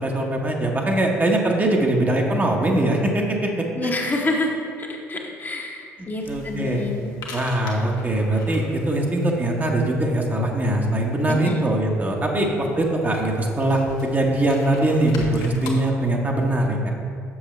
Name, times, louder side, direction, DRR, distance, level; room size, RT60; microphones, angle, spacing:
voice 1, 0.0-3.9 6.0-6.8 7.3-12.5 12.8-16.8, right 1 dB, 25° right, 0 dB, 1.0 m, -22 dB
voice 2, 3.7-7.1 11.3-11.6 12.4-12.5, left 2 dB, 25° left, 0 dB, 1.0 m, -28 dB
sound 1, 6.2-15.7, left 3 dB, 55° left, 1.1 m, -42 dB
7.1 x 6.6 x 3.2 m, 2.3 s
figure-of-eight pair, 55°, 8 cm